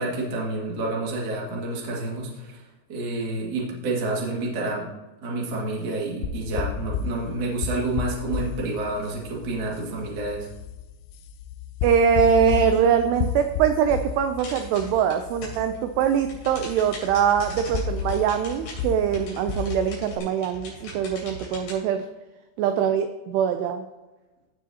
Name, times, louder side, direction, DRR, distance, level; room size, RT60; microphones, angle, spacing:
voice 1, 0.0-2.6 2.9-4.9 5.2-10.5, right 2 dB, 50° right, -3 dB, 1.2 m, -29 dB
sound 1, 6.2-20.2, left 7 dB, 90° left, 3.0 m, -33 dB
voice 2, 11.8-22.0 22.6-23.8, right 8 dB, 85° right, 7 dB, 2.4 m, -23 dB
sound 2, 14.4-15.8 16.1-21.7, left 2 dB, 70° left, 5.2 m, -40 dB
16.0 x 6.3 x 2.8 m, 1.1 s
omnidirectional pair, 5.3 m